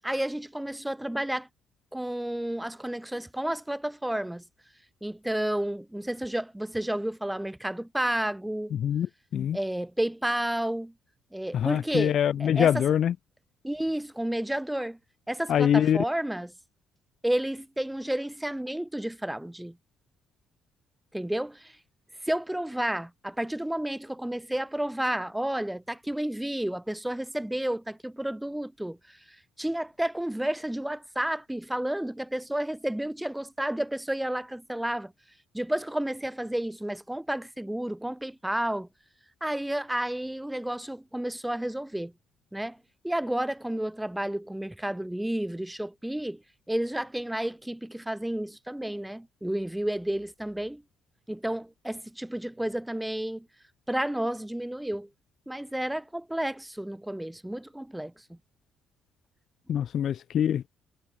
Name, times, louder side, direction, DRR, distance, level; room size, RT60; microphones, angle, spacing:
voice 1, 0.0-1.5 1.9-4.4 5.0-8.7 9.5-10.9 11.3-12.9 13.6-15.0 15.3-16.5 17.2-19.8 21.1-21.7 22.3-29.0 29.6-35.1 35.5-38.9 39.4-42.1 42.5-42.8 43.0-46.4 46.7-50.8 51.3-53.4 53.9-55.1 55.5-58.1, right 1 dB, 5° right, 5.0 m, -31 dB
voice 2, 11.5-13.1 15.5-16.0 59.7-60.7, left 9 dB, 55° left, 1.4 m, -24 dB
cardioid pair, 125°, 0 cm